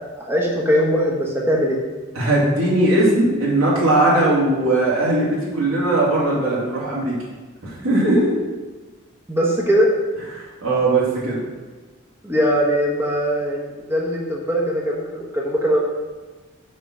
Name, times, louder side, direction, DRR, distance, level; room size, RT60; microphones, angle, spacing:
voice 1, 0.3-1.8 9.3-9.9 12.2-15.8, equal, 10° right, -2 dB, 1.2 m, -20 dB
voice 2, 2.1-7.1 7.6-8.4 10.3-11.4, right 2 dB, 85° right, -7 dB, 2.8 m, -19 dB
5.8 x 5.4 x 6.1 m, 1.2 s
head